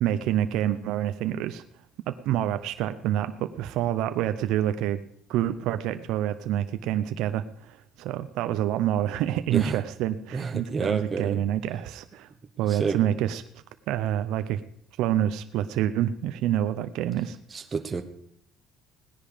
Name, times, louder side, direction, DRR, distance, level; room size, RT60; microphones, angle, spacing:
voice 1, 0.0-1.6 2.1-5.0 5.3-12.3 12.6-13.4 13.9-14.6 15.0-17.4, right 11 dB, 80° right, 10 dB, 0.7 m, -27 dB
voice 2, 9.5-9.8 10.3-11.4 12.7-13.0 17.5-18.0, right 5 dB, 25° right, 6 dB, 1.0 m, -29 dB
18.0 x 10.5 x 5.1 m, 0.71 s
cardioid pair, 120°, 0 cm